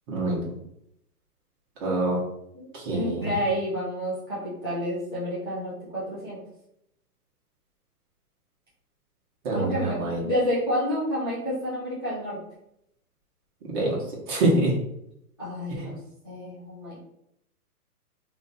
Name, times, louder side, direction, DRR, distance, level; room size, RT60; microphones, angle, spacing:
voice 1, 0.1-0.5 1.8-2.2 2.7-3.3 9.4-10.2 13.6-14.0 14.3-14.7 15.8-15.9, right 2 dB, 30° right, -3 dB, 1.3 m, -25 dB
voice 2, 2.5-6.4 9.5-12.4 15.4-16.0 16.2-17.0, equal, 20° left, -10 dB, 0.3 m, -29 dB
3.1 x 2.5 x 4.1 m, 0.77 s
hypercardioid pair, 150°, 46 cm